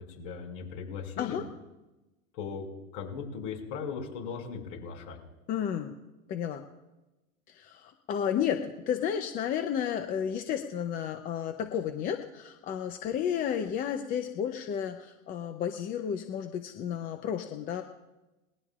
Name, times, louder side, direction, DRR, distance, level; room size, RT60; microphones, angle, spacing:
voice 1, 0.2-1.4 2.3-2.6 2.9-5.2, left 6 dB, 55° left, 2 dB, 5.8 m, -38 dB
voice 2, 5.5-5.9 6.3-6.6 7.5-17.8, left 8 dB, 20° left, 6 dB, 0.6 m, -32 dB
29.5 x 20.0 x 2.4 m, 1.0 s
supercardioid pair, 150°, 41 cm